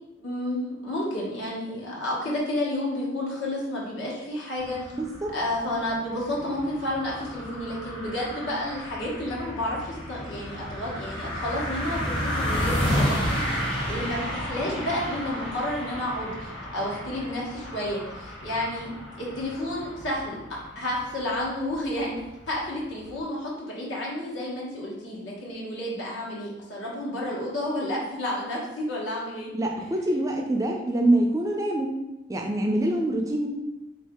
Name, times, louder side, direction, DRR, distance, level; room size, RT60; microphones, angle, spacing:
voice 1, 0.2-4.8 5.3-20.4 20.7-22.1 22.5-29.5, left 1 dB, 75° left, -5 dB, 1.2 m, -31 dB
sound 1, 4.6-23.2, equal, 25° left, 0.8 m, -32 dB
voice 2, 4.9-5.3 29.5-32.0 32.3-33.5, right 1 dB, 15° right, 1 dB, 0.3 m, -25 dB
3.9 x 2.6 x 3.5 m, 1.0 s
head